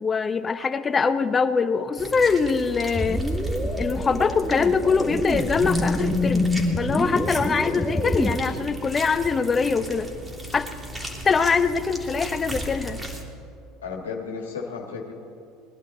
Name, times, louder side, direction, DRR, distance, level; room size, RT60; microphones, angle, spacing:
voice 1, 0.0-3.2 3.8-6.5 6.8-10.1 10.5-10.6 11.2-13.0, left 5 dB, 30° left, 12 dB, 0.7 m, -23 dB
sound 1, 2.0-13.2, right 1 dB, 15° right, 3.1 m, -37 dB
sound 2, 2.9-8.3, left 1 dB, ahead, 1.3 m, -26 dB
voice 2, 13.8-15.1, left 5 dB, 90° left, 0 dB, 1.7 m, -33 dB
21.0 x 11.5 x 4.2 m, 2.5 s
hypercardioid pair, 75°, 0 cm